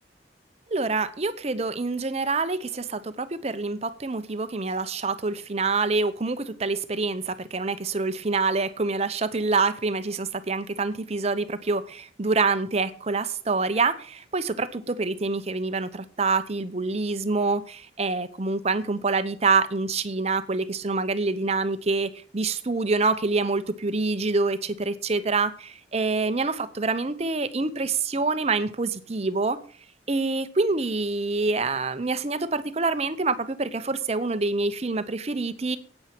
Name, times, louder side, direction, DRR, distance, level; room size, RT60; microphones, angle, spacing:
voice 1, 0.7-29.6 30.1-35.8, right 3 dB, 35° right, 12 dB, 0.7 m, -26 dB
9.0 x 8.8 x 6.0 m, 0.43 s
head